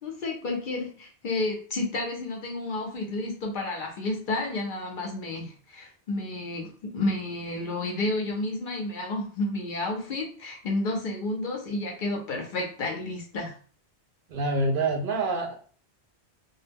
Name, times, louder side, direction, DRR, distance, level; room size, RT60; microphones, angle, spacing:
voice 1, 0.0-13.6, left 2 dB, 60° left, 1 dB, 0.6 m, -31 dB
voice 2, 14.3-15.5, right 2 dB, 60° right, 2 dB, 0.7 m, -26 dB
2.3 x 2.0 x 3.3 m, 0.42 s
omnidirectional pair, 1.1 m